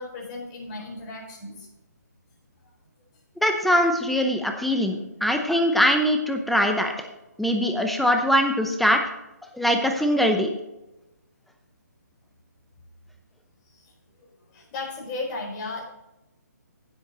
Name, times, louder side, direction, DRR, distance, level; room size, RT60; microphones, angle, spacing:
voice 1, 0.0-1.7 13.8-13.9 14.5-15.8, left 3 dB, 25° left, -2 dB, 4.4 m, -35 dB
voice 2, 3.4-6.9 7.4-9.0 9.5-10.5, equal, ahead, 4 dB, 0.7 m, -22 dB
16.0 x 7.7 x 3.0 m, 0.95 s
figure-of-eight pair, 150°, 10 cm